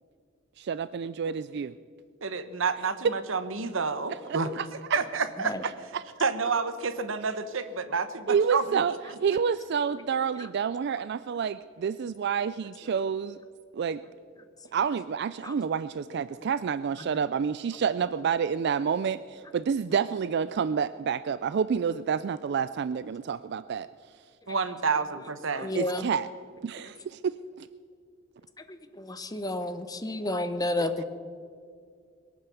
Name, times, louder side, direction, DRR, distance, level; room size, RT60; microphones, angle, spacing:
voice 1, 0.6-1.7 4.1-5.0 5.9-6.0 8.3-13.4 13.7-14.0 14.7-23.9 25.7-26.3 26.6-27.7, right 6 dB, 55° right, 15 dB, 0.3 m, -29 dB
voice 2, 2.2-4.6 4.9-5.6 6.2-8.8 24.5-25.7, right 4 dB, 70° right, 11 dB, 1.0 m, -29 dB
voice 3, 25.5-26.1 28.7-31.0, left 1 dB, 20° left, 10 dB, 0.9 m, -31 dB
22.0 x 8.9 x 7.0 m, 2.2 s
head